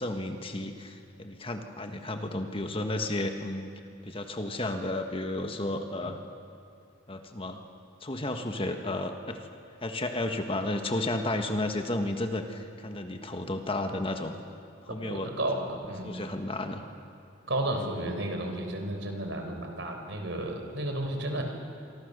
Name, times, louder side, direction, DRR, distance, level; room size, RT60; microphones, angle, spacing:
voice 1, 0.0-3.7 4.0-6.2 7.1-7.6 8.0-9.4 9.8-14.3 14.9-15.3 16.0-16.9, left 1 dB, 30° left, 5 dB, 1.5 m, -32 dB
voice 2, 14.9-16.2 17.5-21.4, right 1 dB, 65° right, 4 dB, 4.3 m, -32 dB
26.5 x 25.0 x 6.8 m, 2.8 s
head